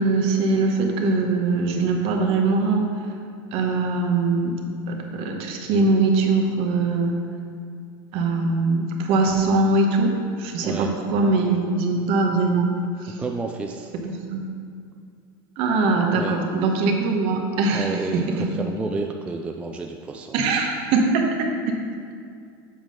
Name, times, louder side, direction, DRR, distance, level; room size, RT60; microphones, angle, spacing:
voice 1, 0.0-2.9 3.5-4.6 4.9-7.1 8.1-12.7 13.0-13.2 14.0-14.5 15.6-18.5 20.3-21.8, right 3 dB, 50° right, 2 dB, 1.1 m, -22 dB
voice 2, 13.2-13.9 16.1-16.3 17.7-18.2 18.6-20.4, right 3 dB, 10° right, 2 dB, 0.3 m, -30 dB
7.3 x 3.8 x 6.2 m, 2.3 s
supercardioid pair, 135°, 12 cm